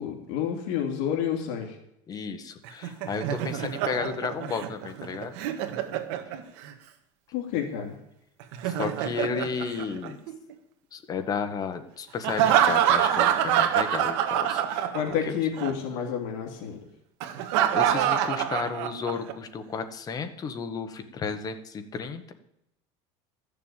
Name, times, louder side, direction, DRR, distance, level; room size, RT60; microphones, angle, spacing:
voice 1, 0.0-1.8 7.3-8.0 14.9-16.8, left 8 dB, 65° left, 2 dB, 2.7 m, -29 dB
voice 2, 2.1-5.4 8.6-10.2 10.9-14.9 15.3-15.4 17.7-22.3, left 5 dB, 25° left, 8 dB, 1.3 m, -33 dB
Laughter, 2.7-6.7 8.4-10.5 12.2-15.3 15.6-15.7 17.2-19.3, right 10 dB, 70° right, 1.5 m, -26 dB
13.0 x 7.0 x 9.0 m, 0.79 s
cardioid pair, 160°, 15 cm